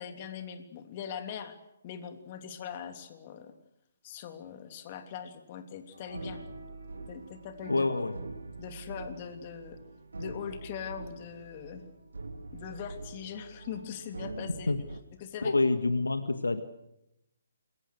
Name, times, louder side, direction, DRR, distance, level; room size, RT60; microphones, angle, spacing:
voice 1, 0.0-1.6 1.8-3.5 4.0-6.4 7.1-7.8 8.6-9.8 10.2-11.8 12.5-14.7 15.2-15.5, left 8 dB, 35° left, 7 dB, 3.1 m, -41 dB
sound 1, 5.9-15.0, right 3 dB, 70° right, 3.4 m, -44 dB
voice 2, 7.7-8.1 14.7-14.8 15.4-16.6, left 3 dB, 75° left, 9 dB, 1.8 m, -27 dB
28.5 x 22.5 x 6.5 m, 0.86 s
figure-of-eight pair, 135°, 0 cm